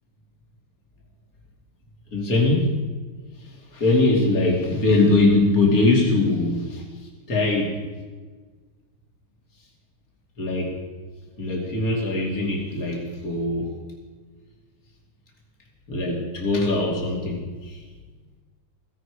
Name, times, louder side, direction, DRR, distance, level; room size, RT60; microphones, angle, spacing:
voice 1, 2.1-2.7 3.7-6.8 7.3-7.7 10.4-10.8 11.4-13.7 15.9-17.8, left 2 dB, 45° left, -2 dB, 3.3 m, -21 dB
16.5 x 16.0 x 4.9 m, 1.4 s
omnidirectional pair, 2.2 m